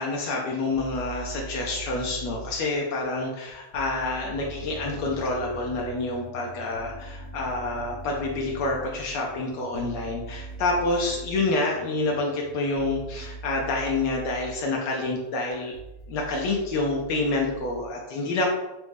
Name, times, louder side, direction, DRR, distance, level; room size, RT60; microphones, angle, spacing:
voice 1, 0.0-15.8 16.1-18.5, left 2 dB, 80° left, -1 dB, 1.3 m, -28 dB
sound 1, 0.6-17.9, right 2 dB, 50° left, 1.1 m, -43 dB
sound 2, 4.3-13.4, right 4 dB, 90° right, 1.2 m, -46 dB
6.1 x 2.1 x 3.3 m, 1.0 s
omnidirectional pair, 1.8 m